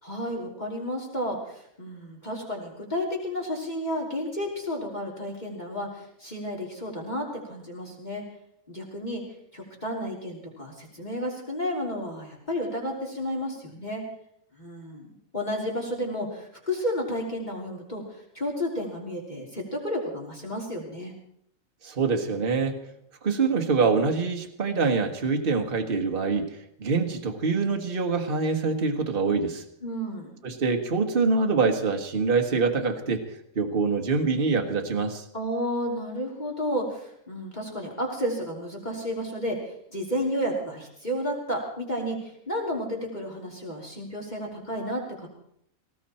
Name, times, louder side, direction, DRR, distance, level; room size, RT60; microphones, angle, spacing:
voice 1, 0.0-8.2 8.7-9.2 9.5-14.0 14.5-21.1 29.8-30.3 35.3-45.3, equal, 30° left, -2 dB, 3.2 m, -32 dB
voice 2, 21.8-22.8 23.2-29.6 30.4-33.2 33.5-35.2, right 4 dB, 40° right, 4 dB, 1.7 m, -25 dB
20.0 x 16.0 x 4.3 m, 0.72 s
omnidirectional pair, 1.4 m